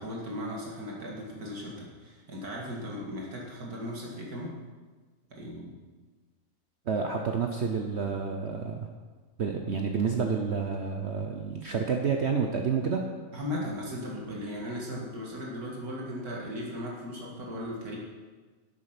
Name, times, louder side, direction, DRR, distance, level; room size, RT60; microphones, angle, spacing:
voice 1, 0.0-4.6 5.3-5.7 13.3-18.0, left 1 dB, 80° right, -3 dB, 2.5 m, -37 dB
voice 2, 6.9-8.9 9.4-13.1, right 5 dB, 50° right, 3 dB, 1.0 m, -29 dB
12.0 x 8.3 x 5.9 m, 1.4 s
omnidirectional pair, 1.6 m